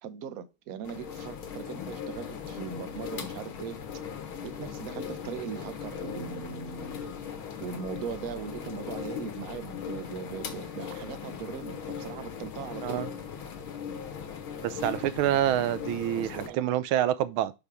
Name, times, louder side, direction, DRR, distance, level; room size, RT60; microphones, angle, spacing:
voice 1, 0.0-4.0 4.4-7.1 7.6-13.0 16.2-16.8, right 7 dB, 55° right, 1.0 m, -39 dB
sound 1, 0.8-16.5, left 7 dB, 90° left, 2.1 m, -39 dB
voice 2, 14.6-17.5, right 12 dB, 80° right, 1.4 m, -27 dB
5.7 x 5.5 x 4.8 m
omnidirectional pair, 2.2 m